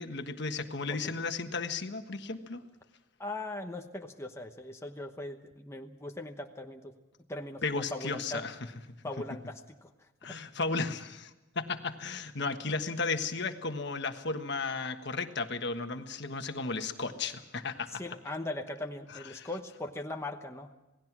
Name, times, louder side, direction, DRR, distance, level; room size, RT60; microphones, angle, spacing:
voice 1, 0.0-2.6 7.6-8.6 10.2-18.0 19.1-19.5, left 4 dB, 55° left, 7 dB, 1.4 m, -34 dB
voice 2, 3.2-6.9 7.3-8.5 9.0-10.4 17.9-20.8, left 2 dB, 15° left, 3 dB, 1.0 m, -40 dB
28.0 x 18.5 x 6.1 m, 1.0 s
head